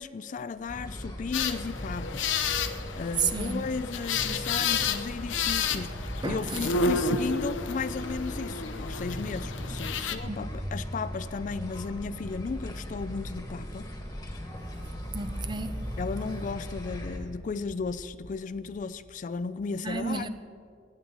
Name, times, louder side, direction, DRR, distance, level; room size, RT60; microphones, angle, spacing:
voice 1, 0.0-2.7 3.0-13.9 16.0-20.3, left 4 dB, 45° left, 0.3 m, -35 dB
sound 1, 0.7-17.2, equal, 20° left, 1.4 m, -38 dB
sound 2, 1.3-10.2, left 5 dB, 85° left, 0.7 m, -31 dB
voice 2, 3.2-3.7 5.7-5.8 6.2-6.7 10.2-10.4 15.1-16.0 19.8-20.3, right 4 dB, 25° right, 0.5 m, -32 dB
17.0 x 9.6 x 3.9 m
head